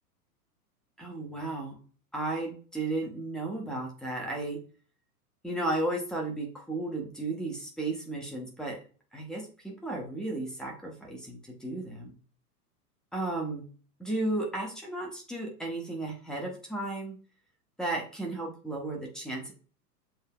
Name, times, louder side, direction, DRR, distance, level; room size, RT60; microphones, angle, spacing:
voice 1, 1.0-1.8 2.1-4.6 5.4-8.8 9.1-12.2 13.1-13.7 14.0-17.2 17.8-19.5, right 2 dB, ahead, 0 dB, 0.7 m, -34 dB
7.7 x 2.7 x 2.2 m, 0.39 s
figure-of-eight pair, 105°, 46 cm